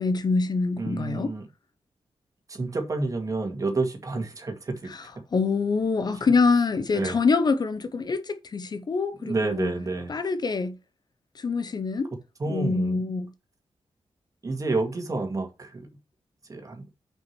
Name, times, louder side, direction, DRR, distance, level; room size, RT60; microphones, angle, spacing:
voice 1, 0.0-1.3 4.9-5.0 5.3-9.7 10.1-10.8 11.4-12.1 12.5-13.3, left 4 dB, 40° left, 0.7 m, -25 dB
voice 2, 0.8-1.5 2.5-4.9 6.9-7.2 9.2-10.1 12.4-13.0 14.4-15.9 16.5-16.8, right 3 dB, 30° right, 2.0 m, -29 dB
6.4 x 5.3 x 6.0 m
wide cardioid pair, 155°, 11 cm